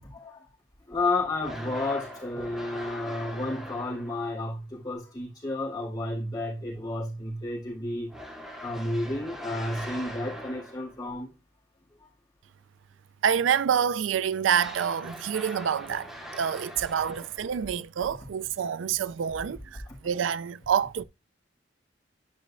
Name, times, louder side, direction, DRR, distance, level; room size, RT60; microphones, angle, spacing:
voice 1, 0.9-8.1 8.6-11.3, left 2 dB, 20° left, 3.8 m, -31 dB
sound 1, 1.4-4.4 8.1-11.0 14.5-17.6, equal, ahead, 2.9 m, -42 dB
voice 2, 13.2-21.0, right 8 dB, 85° right, 0.4 m, -27 dB
11.5 x 5.4 x 2.5 m
head